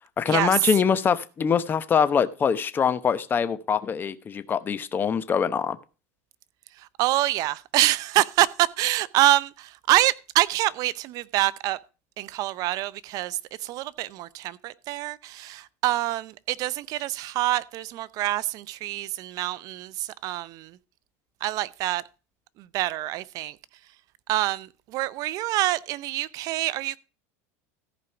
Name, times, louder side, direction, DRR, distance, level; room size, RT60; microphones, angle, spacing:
voice 1, 0.2-5.8, left 7 dB, 25° left, 0.9 m, -24 dB
voice 2, 6.8-11.8 12.2-20.8 21.4-22.0 22.6-23.6 24.3-27.0, right 15 dB, 50° right, 0.5 m, -26 dB
14.0 x 5.1 x 5.8 m
supercardioid pair, 125°, 8 cm